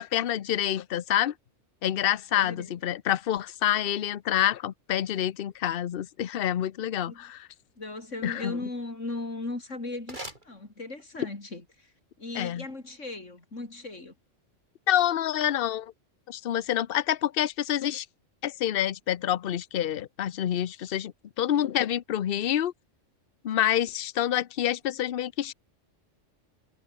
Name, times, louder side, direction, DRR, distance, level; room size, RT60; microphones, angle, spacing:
voice 1, 0.0-1.3 1.8-7.4 8.2-8.5 12.4-12.6 14.9-15.9 16.3-18.1 18.4-22.7 23.4-25.5, left 11 dB, 55° left, 0.8 m, -27 dB
voice 2, 2.3-2.8 7.1-7.3 7.8-14.2, left 2 dB, 75° left, 4.7 m, -38 dB
sound 1, 9.9-11.3, right 1 dB, 40° right, 5.8 m, -45 dB
omnidirectional pair, 1.3 m